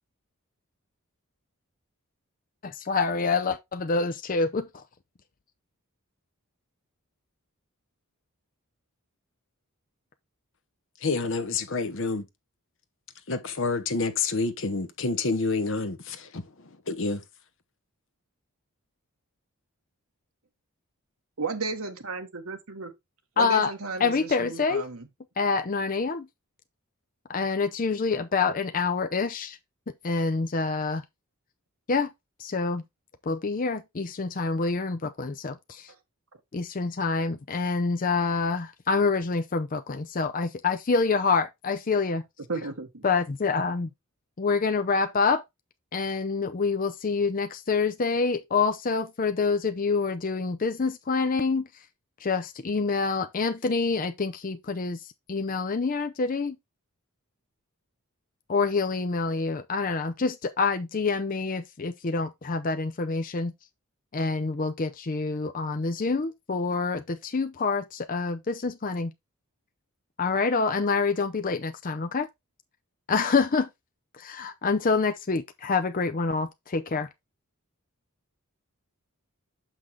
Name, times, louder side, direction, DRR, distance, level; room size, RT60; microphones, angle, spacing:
voice 1, 2.6-4.8 23.4-23.7 24.0-24.9 25.4-26.3 27.3-29.6 30.0-31.0 31.9-32.1 32.4-32.8 33.2-35.9 36.5-42.2 43.0-43.9 44.4-45.4 45.9-51.8 52.2-56.6 58.5-63.5 64.1-69.1 70.2-72.3 73.1-73.7 74.1-77.1, left 4 dB, 40° left, 0.5 m, -27 dB
voice 2, 11.0-12.3 13.3-17.2, left 3 dB, 60° left, 1.0 m, -28 dB
voice 3, 21.4-22.9 23.4-25.1 42.5-43.0, right 3 dB, 75° right, 1.5 m, -34 dB
6.4 x 5.8 x 3.4 m
head